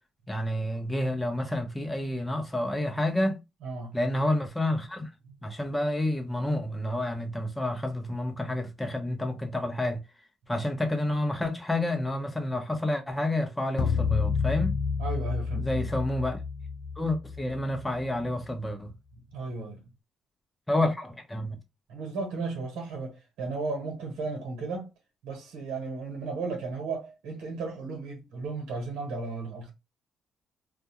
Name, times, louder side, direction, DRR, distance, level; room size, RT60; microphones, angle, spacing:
voice 1, 0.3-3.4 3.9-5.1 5.4-10.0 10.5-14.8 15.6-16.4 17.0-18.9 20.7-21.6, left 1 dB, 10° left, 0.7 m, -29 dB
voice 2, 3.6-3.9 15.0-15.9 19.3-19.8 21.9-24.9 25.2-29.7, right 3 dB, 90° right, 1.0 m, -35 dB
sound 1, 13.8-18.2, left 5 dB, 85° left, 0.4 m, -29 dB
2.3 x 2.1 x 2.9 m
cardioid pair, 90°, 0 cm